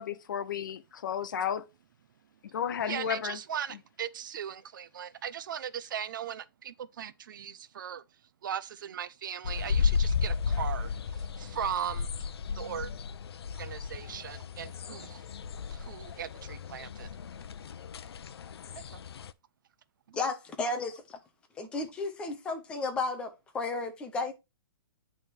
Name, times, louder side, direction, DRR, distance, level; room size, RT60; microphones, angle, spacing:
voice 1, 0.0-1.6 2.5-3.4, left 8 dB, 55° left, 0.8 m, -33 dB
voice 2, 2.8-8.0 8.4-12.1 12.5-12.9 13.6-15.3 15.7-17.1 18.7-19.0 20.1-20.2, right 9 dB, 55° right, 0.6 m, -38 dB
sound 1, 9.4-19.3, left 5 dB, 85° left, 0.5 m, -34 dB
voice 3, 20.1-21.2 21.6-24.3, left 3 dB, 10° left, 0.6 m, -33 dB
8.7 x 3.6 x 4.4 m
hypercardioid pair, 170°, 13 cm